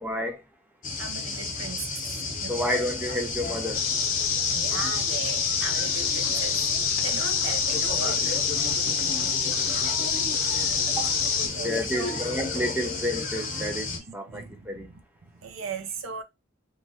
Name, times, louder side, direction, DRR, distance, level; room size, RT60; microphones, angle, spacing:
voice 1, 0.0-0.4 2.5-3.8 8.9-9.5 10.5-14.9, left 1 dB, 10° right, 0.5 m, -31 dB
sound 1, 0.8-14.0, left 3 dB, 40° left, 0.8 m, -33 dB
voice 2, 1.0-2.0 2.4-2.6 4.5-6.6 7.0-8.4 9.9-10.1 11.1-11.2 11.5-12.2 13.9-16.2, right 5 dB, 85° right, 0.6 m, -38 dB
sound 2, 3.7-11.5, left 6 dB, 75° left, 0.6 m, -26 dB
3.1 x 2.3 x 2.7 m
head